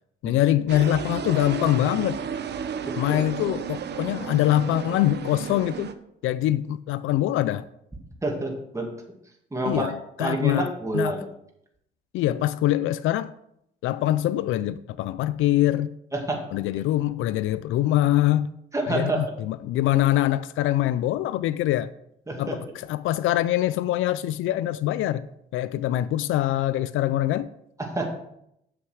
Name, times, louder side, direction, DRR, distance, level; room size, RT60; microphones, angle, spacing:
voice 1, 0.2-2.2 3.0-5.9 6.2-7.6 9.6-11.2 12.1-13.3 13.8-15.9 16.5-18.5 18.9-21.9 22.4-22.6 22.9-25.3 25.5-27.5, left 13 dB, 85° left, 0.4 m, -24 dB
sound 1, 0.7-5.9, right 7 dB, 60° right, 0.9 m, -33 dB
voice 2, 2.8-3.2 8.2-8.9 9.5-9.9 10.2-11.3 16.1-16.4 18.7-19.3 22.3-22.6 27.8-28.1, right 2 dB, 15° right, 2.3 m, -28 dB
7.9 x 5.9 x 6.4 m
cardioid pair, 90°, 20 cm